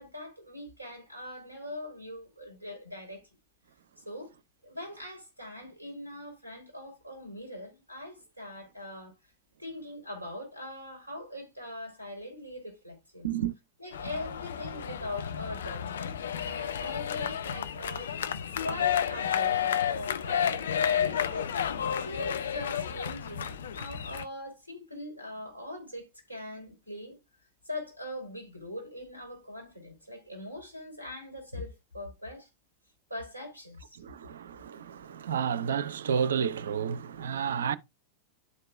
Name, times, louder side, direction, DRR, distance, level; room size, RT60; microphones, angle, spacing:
voice 1, 0.0-3.2 4.0-4.3 4.6-9.1 9.6-13.4 13.8-16.1 16.4-18.2 18.6-21.6 22.0-27.2 27.6-32.5 33.1-34.0, left 1 dB, 90° left, 3.2 m, -41 dB
sound 1, 13.9-24.2, left 9 dB, 65° left, 0.5 m, -31 dB
voice 2, 34.0-37.8, right 7 dB, 65° right, 0.5 m, -31 dB
11.0 x 4.7 x 2.3 m
figure-of-eight pair, 90°, 0 cm